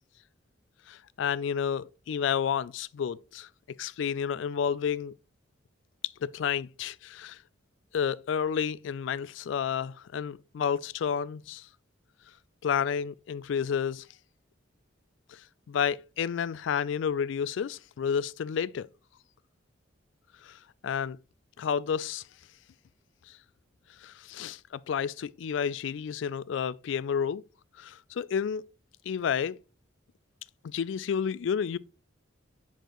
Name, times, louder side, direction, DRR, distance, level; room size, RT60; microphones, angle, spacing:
voice 1, 0.9-3.5 3.8-5.1 6.2-7.4 7.9-11.7 12.6-14.1 15.3-15.4 15.7-18.9 20.4-21.2 21.6-22.2 24.0-24.6 24.9-27.4 27.8-28.6 29.1-29.5 30.6-31.8, left 7 dB, 65° left, 0.3 m, -30 dB
7.8 x 4.5 x 3.0 m
head